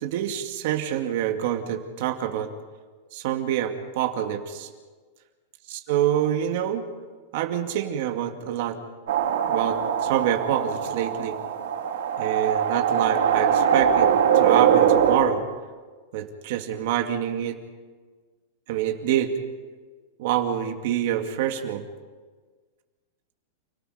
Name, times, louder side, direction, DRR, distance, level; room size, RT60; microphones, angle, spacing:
voice 1, 0.0-2.5 3.1-4.7 5.7-6.8 7.3-8.8 9.4-11.4 12.2-15.4 16.1-17.6 18.7-19.3 20.2-21.8, right 10 dB, 45° right, 5 dB, 2.3 m, -26 dB
sound 1, 9.1-15.2, right 8 dB, 85° right, 4.1 m, -22 dB
29.5 x 18.0 x 5.2 m, 1.4 s
supercardioid pair, 175°, 0 cm